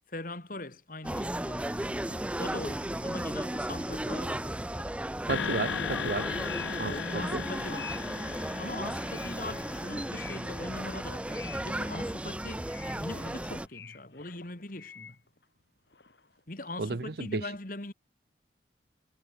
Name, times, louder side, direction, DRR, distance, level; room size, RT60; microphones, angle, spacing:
voice 1, 0.1-4.7 6.8-8.0 8.6-15.2 16.5-17.9, left 2 dB, 50° left, 2.7 m, -41 dB
sound 1, 1.0-13.7, right 1 dB, 5° right, 0.5 m, -35 dB
sound 2, 4.6-15.6 15.9-16.4, left 7 dB, 70° left, 2.7 m, -50 dB
sound 3, 5.3-11.7, left 7 dB, 85° left, 0.6 m, -38 dB
voice 2, 5.3-6.3 6.8-7.5 16.8-17.4, right 3 dB, 60° right, 0.7 m, -33 dB
head